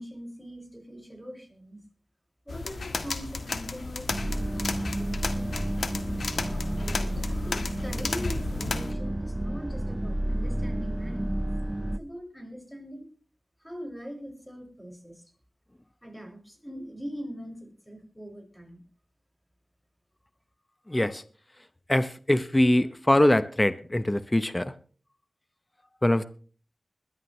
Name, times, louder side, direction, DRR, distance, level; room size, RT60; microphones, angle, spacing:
voice 1, 0.0-1.8 2.5-5.6 6.8-11.5 12.0-13.0 13.6-15.2 16.0-18.8, equal, 5° left, 2 dB, 6.0 m, -42 dB
sound 1, 2.5-8.9, left 3 dB, 85° left, 1.5 m, -33 dB
sound 2, 4.1-12.0, right 1 dB, 20° right, 0.6 m, -31 dB
voice 2, 20.9-21.2 21.9-24.6 26.0-26.3, left 1 dB, 20° left, 13 dB, 0.9 m, -23 dB
21.0 x 12.5 x 3.2 m, 0.41 s
wide cardioid pair, 55°, 0 cm